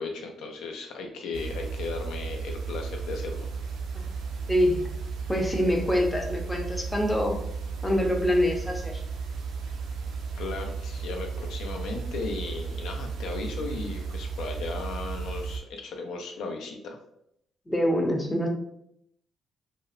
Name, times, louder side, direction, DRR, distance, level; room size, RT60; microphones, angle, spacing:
voice 1, 0.0-3.5 10.3-17.0, left 3 dB, 85° left, 3 dB, 0.5 m, -36 dB
sound 1, 1.3-15.6, right 5 dB, 75° right, 0.4 m, -34 dB
voice 2, 4.5-4.9 5.3-7.4 7.8-9.0 17.7-18.5, equal, 15° left, 1 dB, 0.5 m, -25 dB
2.6 x 2.0 x 2.5 m, 0.74 s
cardioid pair, 90°, 0 cm